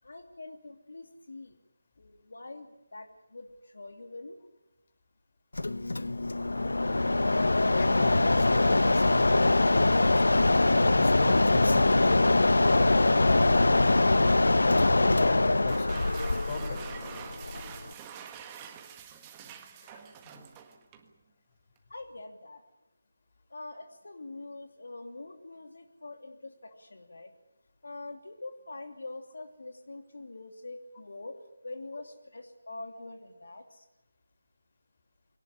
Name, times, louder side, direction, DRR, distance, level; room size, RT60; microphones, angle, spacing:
voice 1, 0.0-1.6 2.0-4.4 21.9-22.6 23.5-27.3 27.8-31.4 31.6-33.8, left 2 dB, 70° left, 6 dB, 2.9 m, -44 dB
Mechanisms, 5.5-17.9, left 2 dB, 90° left, 1.0 m, -23 dB
voice 2, 7.7-10.3 10.9-13.7 14.5-16.9 19.8-20.4, left 4 dB, 30° left, 7 dB, 3.8 m, -39 dB
sound 1, 15.5-21.1, right 8 dB, 15° right, 1.6 m, -46 dB
22.5 x 18.5 x 9.9 m, 0.89 s
figure-of-eight pair, 170°, 0 cm